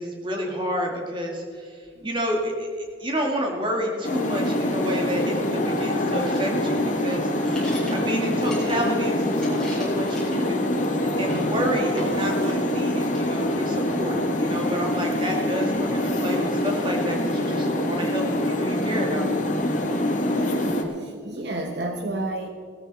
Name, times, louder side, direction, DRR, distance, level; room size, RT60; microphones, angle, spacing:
voice 1, 0.0-19.3, equal, 25° right, 1 dB, 2.2 m, -30 dB
sound 1, 4.0-20.8, left 1 dB, 40° left, 1.6 m, -25 dB
sound 2, 6.3-9.0 9.2-10.9 11.2-11.5 12.0-12.8 13.1-13.9, left 1 dB, 5° left, 4.7 m, -39 dB
voice 2, 20.2-20.6 21.0-22.5, right 2 dB, 60° right, 4 dB, 1.1 m, -31 dB
17.5 x 13.5 x 4.1 m, 2.1 s
head